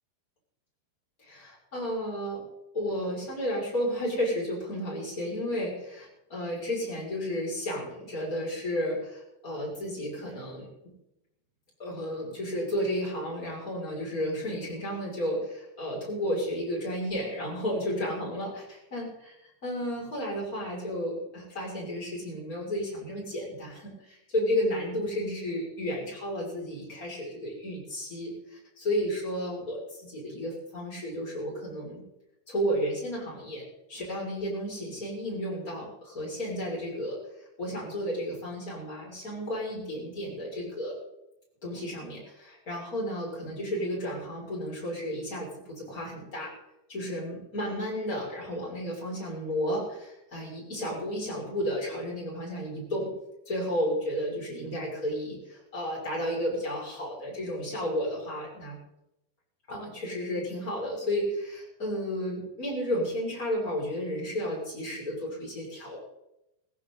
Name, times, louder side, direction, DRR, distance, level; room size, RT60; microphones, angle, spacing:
voice 1, 1.2-2.4 2.7-10.7 11.8-32.0 32.5-33.6 33.9-37.2 37.6-41.0 41.6-46.5 46.9-53.1 53.5-58.8 59.7-66.0, equal, 15° left, -4 dB, 6.5 m, -32 dB
17.0 x 16.5 x 4.1 m, 0.85 s
omnidirectional pair, 5.5 m